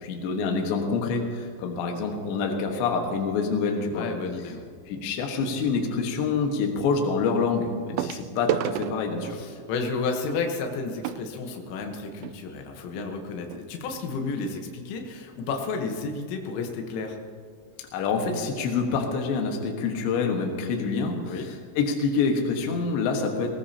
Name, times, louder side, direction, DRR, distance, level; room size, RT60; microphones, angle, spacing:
voice 1, 0.0-4.1 4.9-9.4 17.9-23.5, left 4 dB, 70° left, 2 dB, 3.5 m, -26 dB
voice 2, 3.9-4.7 9.2-17.2 21.2-21.5, left 4 dB, 90° left, 3 dB, 3.8 m, -32 dB
sound 1, 4.5-4.7 6.4-6.5 8.0-12.4 13.2-13.3 13.5-13.7 14.2-14.3, right 12 dB, 85° right, 2.7 m, -33 dB
19.5 x 19.5 x 2.9 m, 2.2 s
omnidirectional pair, 5.6 m